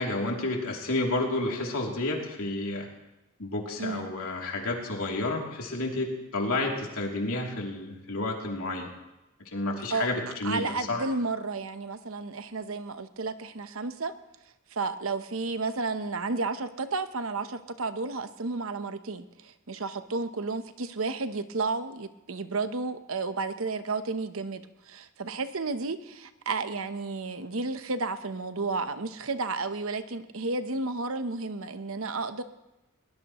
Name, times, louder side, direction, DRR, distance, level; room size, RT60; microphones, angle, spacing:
voice 1, 0.0-2.9 3.4-8.9 9.4-11.0, left 2 dB, 80° left, -1 dB, 3.0 m, -30 dB
voice 2, 3.8-4.1 9.9-14.1 14.7-32.4, right 3 dB, 70° right, 10 dB, 0.9 m, -32 dB
21.5 x 19.0 x 3.1 m, 0.95 s
head